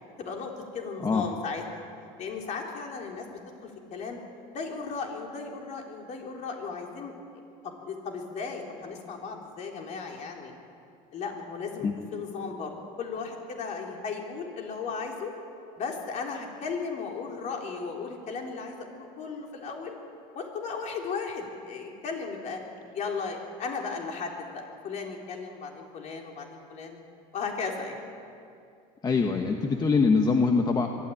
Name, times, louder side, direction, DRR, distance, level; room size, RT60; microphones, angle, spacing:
voice 1, 0.2-1.6 2.2-3.3 3.6-4.2 4.5-7.1 7.6-10.5 11.1-15.3 15.8-19.9 20.3-22.6 22.9-27.0 27.3-28.0, left 5 dB, 45° left, 1 dB, 3.9 m, -36 dB
voice 2, 29.0-30.9, left 4 dB, 25° left, 4 dB, 1.2 m, -23 dB
23.0 x 13.5 x 8.8 m, 2.5 s
cardioid pair, 130°, 17 cm